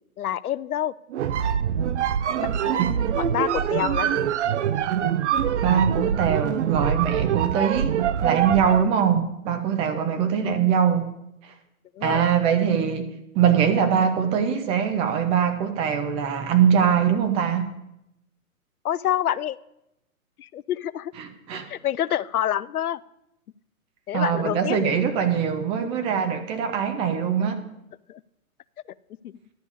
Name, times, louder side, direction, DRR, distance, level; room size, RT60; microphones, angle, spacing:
voice 1, 0.2-0.9 2.4-2.8 3.2-4.3 12.0-12.3 18.8-19.6 20.4-21.1 21.7-23.0 24.1-24.9 28.1-28.2 29.2-29.3, left 11 dB, 85° left, 19 dB, 0.5 m, -27 dB
sound 1, 1.1-8.9, right 9 dB, 55° right, 0.7 m, -24 dB
voice 2, 5.6-11.1 11.4-11.5 12.0-13.1 13.3-17.7 21.2-21.7 24.1-27.6, right 8 dB, 15° right, 7 dB, 0.5 m, -22 dB
11.0 x 5.2 x 8.2 m, 0.84 s
hypercardioid pair, 120°, 43 cm